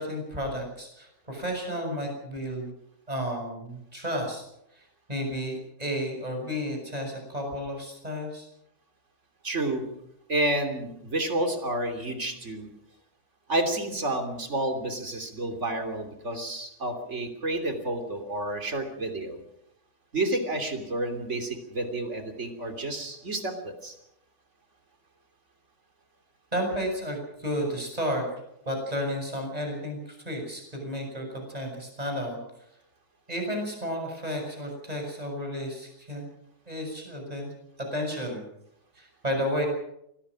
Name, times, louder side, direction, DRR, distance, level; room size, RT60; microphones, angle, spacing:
voice 1, 0.0-2.7 3.1-4.4 4.7-8.5 26.5-28.2 28.7-32.4 33.3-36.2 36.7-37.5 37.9-38.4 39.0-39.7, equal, 25° right, 2 dB, 6.8 m, -32 dB
voice 2, 9.4-9.9 10.3-12.7 13.5-19.4 20.1-24.0, right 1 dB, 50° right, 5 dB, 3.3 m, -30 dB
24.5 x 18.0 x 6.2 m, 0.79 s
omnidirectional pair, 1.6 m